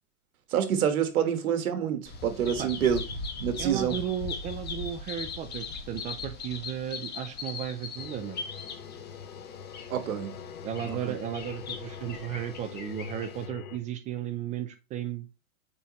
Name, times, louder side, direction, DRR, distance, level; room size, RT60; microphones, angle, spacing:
voice 1, 0.5-3.0 3.4-4.0 9.9-10.4 10.8-11.1, right 8 dB, 90° right, 1.4 m, -27 dB
Bird vocalization bird call bird song, 2.0-13.5, left 4 dB, 25° left, 1.5 m, -40 dB
voice 2, 3.6-8.4 10.6-15.3, right 10 dB, 20° right, 0.3 m, -35 dB
sound 1, 8.0-13.8, left 8 dB, 85° left, 1.0 m, -43 dB
6.9 x 5.0 x 3.0 m
supercardioid pair, 130°, 42 cm